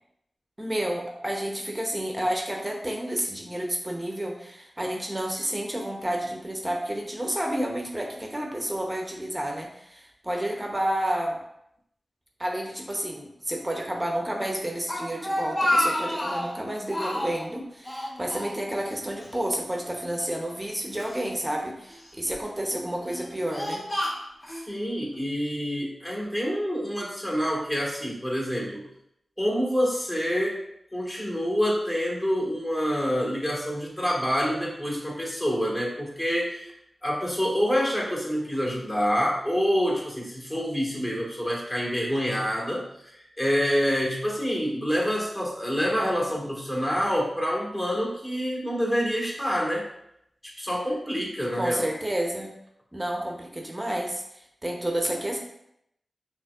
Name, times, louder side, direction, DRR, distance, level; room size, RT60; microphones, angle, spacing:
voice 1, 0.6-11.4 12.4-23.8 51.5-52.5 52.9-55.4, right 1 dB, 20° right, 1 dB, 0.8 m, -30 dB
Speech, 14.6-16.6 16.9-17.5 17.8-19.0 19.2-19.4 20.2-21.2 21.9-22.3 23.0-24.6, left 1 dB, 35° left, 1.3 m, -29 dB
voice 2, 24.5-28.8 29.4-30.6 30.9-36.7 37.0-49.9 50.4-51.9, equal, 20° left, -3 dB, 1.6 m, -27 dB
5.6 x 3.0 x 2.4 m, 0.77 s
cardioid pair, 50°, 0 cm